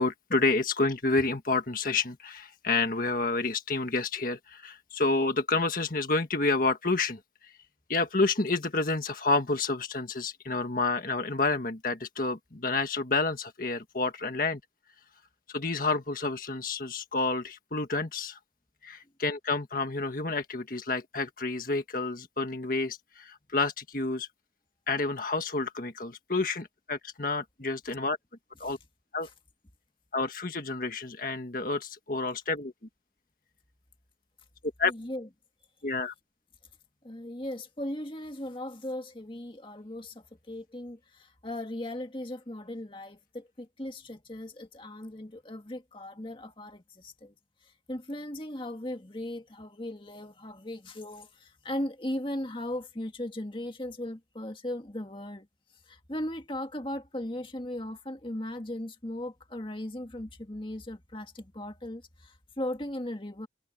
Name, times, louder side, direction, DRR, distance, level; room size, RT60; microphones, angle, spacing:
voice 1, 0.0-7.2 7.9-14.6 15.5-18.4 18.8-24.3 24.9-28.2 28.6-28.8 29.1-29.3 30.1-32.7 34.8-34.9 35.8-36.1, left 3 dB, 50° left, 1.7 m, -29 dB
voice 2, 34.8-35.3 37.0-41.0 41.4-47.3 47.9-55.5 55.9-63.5, left 1 dB, 30° left, 1.9 m, -37 dB
head